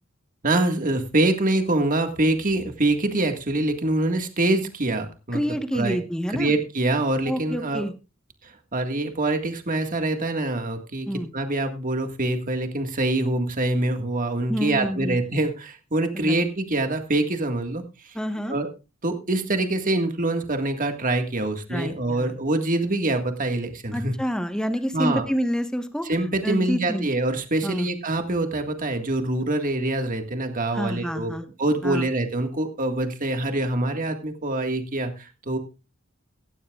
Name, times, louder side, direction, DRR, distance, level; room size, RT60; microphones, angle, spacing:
voice 1, 0.4-5.4 5.7-6.0 6.3-7.8 8.4-11.1 11.3-18.2 18.5-18.7 19.0-24.2 24.9-25.2 26.0-31.3 31.6-35.6, right 2 dB, 40° right, 6 dB, 1.8 m, -25 dB
voice 2, 5.3-6.5 7.3-7.9 11.1-11.3 14.5-15.2 16.1-16.4 18.1-18.6 21.7-22.4 23.9-26.1 26.4-27.1 27.6-27.9 30.7-31.5 31.8-32.1, equal, 5° left, 8 dB, 1.1 m, -28 dB
15.5 x 15.0 x 2.4 m, 0.30 s
head